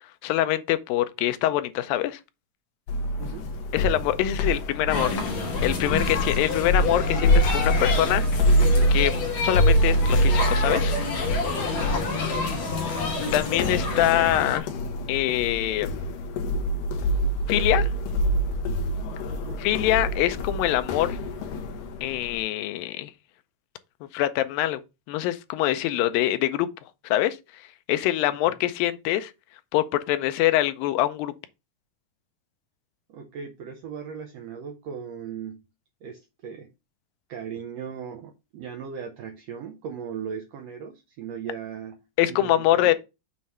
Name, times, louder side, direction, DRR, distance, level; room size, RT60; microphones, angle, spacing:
voice 1, 0.2-2.2 3.7-5.2 5.6-8.5 8.9-10.9 13.3-14.7 15.1-15.9 17.5-17.9 19.6-21.2 22.0-23.1 24.1-24.8 25.1-26.7 27.0-27.6 27.9-29.3 29.7-31.3 42.2-42.9, left 14 dB, 90° left, 2.4 m, -24 dB
sound 1, 2.9-22.4, equal, 75° left, 2.6 m, -26 dB
voice 2, 3.2-3.5 12.0-12.7 19.3-19.6 28.3-28.4 33.1-35.6 36.0-36.7 37.3-42.0 42.3-42.9, right 7 dB, 75° right, 1.5 m, -38 dB
sound 2, 4.9-14.6, left 3 dB, 55° left, 2.6 m, -28 dB
7.4 x 3.2 x 5.6 m
omnidirectional pair, 4.0 m